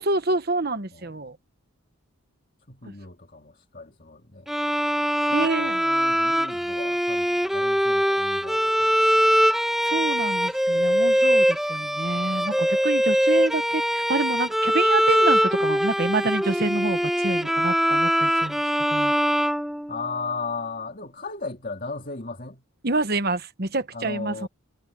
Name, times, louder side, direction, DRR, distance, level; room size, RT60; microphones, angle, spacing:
voice 1, 0.0-1.4 5.3-5.8 9.8-18.6 18.9-19.1 22.8-24.5, right 2 dB, 45° right, 1.2 m, -27 dB
voice 2, 2.7-4.5 5.3-9.3 19.9-22.6 23.9-24.5, left 4 dB, 40° left, 2.6 m, -36 dB
Bowed string instrument, 4.5-20.3, equal, ahead, 1.7 m, -22 dB
head